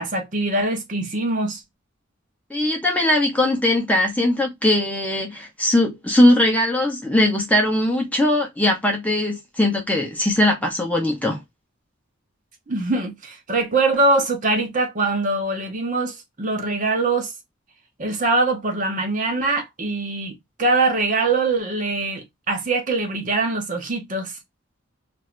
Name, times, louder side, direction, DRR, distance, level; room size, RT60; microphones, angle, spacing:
voice 1, 0.0-1.6 12.7-17.3 18.0-24.4, right 3 dB, 40° right, 0.8 m, -23 dB
voice 2, 2.5-11.4, left 1 dB, 10° left, 0.7 m, -20 dB
2.7 x 2.5 x 3.1 m
head